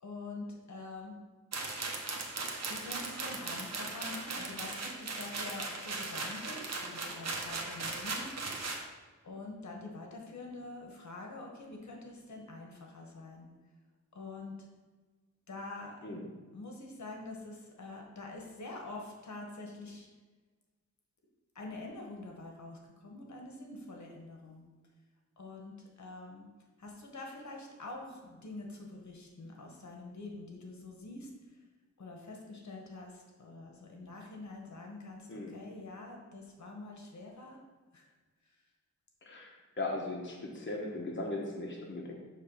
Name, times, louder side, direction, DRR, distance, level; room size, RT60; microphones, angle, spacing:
voice 1, 0.0-1.1 2.7-8.5 9.2-13.5 14.1-14.6 15.5-16.0 16.5-20.1 21.5-24.6 25.4-26.5 26.8-31.3 32.0-37.6 37.9-38.1, left 2 dB, 65° left, 0 dB, 1.2 m, -46 dB
sound 1, 1.5-8.8, right 3 dB, 55° right, 1.0 m, -38 dB
voice 2, 39.2-42.1, left 2 dB, 40° left, -2 dB, 1.0 m, -38 dB
6.5 x 3.2 x 5.3 m, 1.3 s
wide cardioid pair, 85°, 31 cm